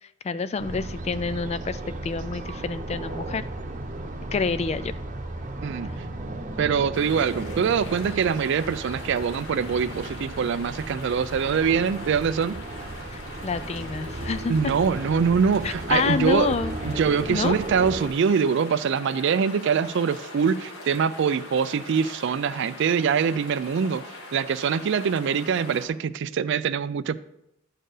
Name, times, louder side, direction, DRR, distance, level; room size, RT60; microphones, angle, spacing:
voice 1, 0.2-3.4 4.3-4.9 13.1-14.7 15.6-16.8 17.3-17.5, left 5 dB, 30° left, 0.3 m, -28 dB
sound 1, 0.6-18.1, right 1 dB, 35° right, 0.9 m, -35 dB
voice 2, 6.6-12.6 14.5-16.5 16.8-24.0 24.3-27.2, right 6 dB, 60° right, 0.4 m, -24 dB
sound 2, 6.9-25.9, left 1 dB, 80° left, 1.6 m, -42 dB
11.5 x 4.4 x 4.9 m
head